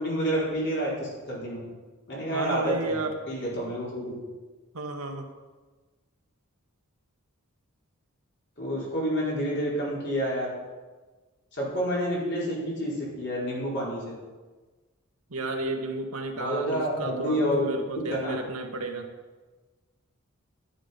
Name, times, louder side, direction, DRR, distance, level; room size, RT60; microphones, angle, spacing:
voice 1, 0.0-1.6 2.1-3.0 3.3-4.2 8.6-10.5 11.5-14.1 16.3-17.7 18.1-18.3, equal, 50° left, -5 dB, 4.4 m, -29 dB
voice 2, 2.3-3.2 4.7-5.3 15.3-19.1, right 2 dB, 80° right, 3 dB, 1.6 m, -32 dB
11.0 x 10.5 x 5.3 m, 1.3 s
head